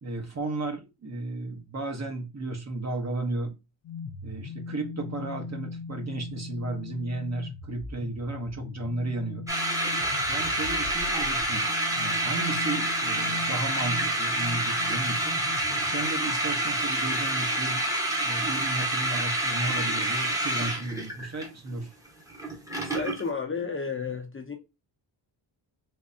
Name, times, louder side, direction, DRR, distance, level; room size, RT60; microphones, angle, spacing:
voice 1, 0.0-3.5 4.2-9.5 10.3-15.4 15.8-17.8 18.2-21.9, right 2 dB, 35° right, 0.9 m, -34 dB
sound 1, 3.8-16.7, left 4 dB, 60° left, 0.6 m, -41 dB
sound 2, 9.5-23.3, right 1 dB, 5° right, 0.9 m, -28 dB
voice 2, 22.8-24.5, left 5 dB, 25° left, 0.7 m, -32 dB
3.5 x 3.2 x 2.6 m
cardioid pair, 100°, 48 cm